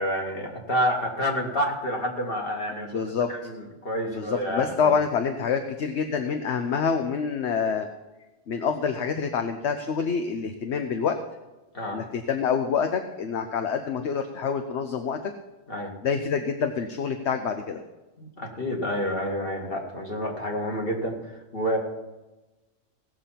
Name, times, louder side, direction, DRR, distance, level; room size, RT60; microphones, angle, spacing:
voice 1, 0.0-3.0 3.3-4.9 11.7-12.0 15.7-15.9 18.2-21.8, equal, 45° left, 0 dB, 2.4 m, -29 dB
voice 2, 2.7-3.3 4.1-7.9 8.5-11.2 11.9-15.2 16.0-17.8, left 6 dB, 65° left, 6 dB, 1.1 m, -27 dB
17.5 x 7.0 x 5.8 m, 1.1 s
omnidirectional pair, 1.3 m